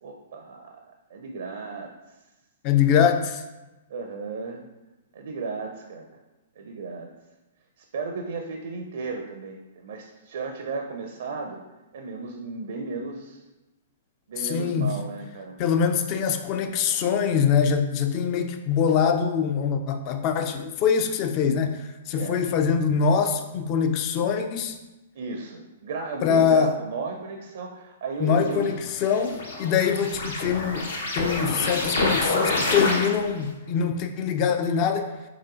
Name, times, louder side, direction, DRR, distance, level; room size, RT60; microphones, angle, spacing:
voice 1, 0.0-1.9 3.9-4.6 5.1-6.2 6.6-7.1 7.8-11.6 11.9-13.4 14.3-15.6 22.1-22.4 25.1-28.7, right 4 dB, 55° right, 4 dB, 0.4 m, -34 dB
voice 2, 2.6-3.4 14.4-14.9 15.6-24.8 26.2-26.7 28.2-35.1, left 7 dB, 35° left, 6 dB, 0.4 m, -23 dB
sound 1, 28.5-33.4, left 2 dB, 65° left, 0.9 m, -27 dB
4.8 x 4.2 x 2.4 m, 1.1 s
figure-of-eight pair, 110°, 0 cm